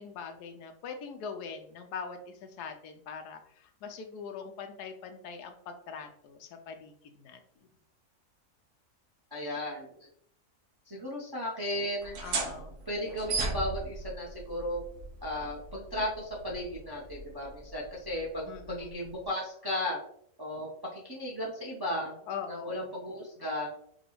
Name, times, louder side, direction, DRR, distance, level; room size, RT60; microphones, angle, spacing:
voice 1, 0.0-7.4 12.2-12.8 18.5-19.0 22.3-22.9, left 6 dB, 90° left, 6 dB, 1.2 m, -42 dB
voice 2, 9.3-9.9 10.9-12.2 12.9-14.8 15.2-20.0 20.4-22.2 22.5-23.7, left 1 dB, 25° right, -4 dB, 0.5 m, -35 dB
sound 1, 12.0-19.3, right 3 dB, 80° right, 1.3 m, -38 dB
5.0 x 2.3 x 3.1 m, 0.66 s
omnidirectional pair, 1.6 m